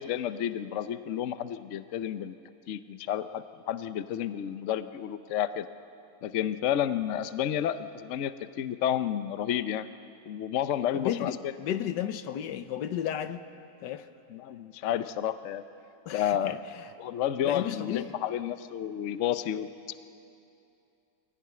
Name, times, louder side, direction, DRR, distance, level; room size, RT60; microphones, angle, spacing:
voice 1, 0.0-2.4 2.7-5.7 6.2-9.9 10.3-11.5 14.3-15.6 16.1-16.6 17.0-20.0, left 10 dB, 60° left, 12 dB, 0.8 m, -31 dB
voice 2, 10.9-13.4 13.8-14.1 16.1-16.6 17.4-18.1, left 10 dB, 80° left, 11 dB, 1.4 m, -33 dB
23.0 x 16.5 x 9.5 m, 2.6 s
omnidirectional pair, 1.9 m